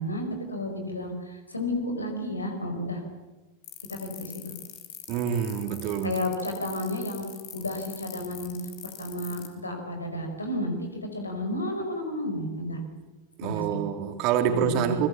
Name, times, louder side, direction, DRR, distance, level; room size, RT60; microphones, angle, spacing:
voice 1, 0.0-3.0 3.9-4.5 6.0-7.2 7.5-8.6 8.8-12.8 13.4-13.8 14.4-15.1, left 1 dB, 80° left, 5 dB, 5.1 m, -32 dB
sound 1, 3.6-9.5, left 16 dB, 45° left, 4.0 m, -42 dB
voice 2, 5.1-6.2 13.4-15.1, right 9 dB, 40° right, 6 dB, 3.1 m, -26 dB
28.5 x 22.0 x 7.3 m, 1.2 s
figure-of-eight pair, 90°, 0 cm